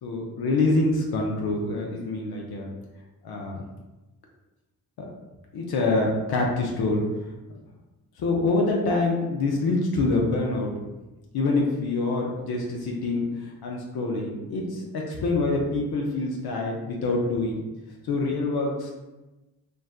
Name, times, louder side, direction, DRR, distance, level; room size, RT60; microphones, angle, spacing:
voice 1, 0.0-2.7 3.2-3.6 5.0-5.1 5.5-7.0 8.2-10.7 11.3-17.6 18.0-18.9, left 2 dB, 70° left, -1 dB, 0.6 m, -26 dB
2.5 x 2.2 x 2.3 m, 1.1 s
supercardioid pair, 50°, 39 cm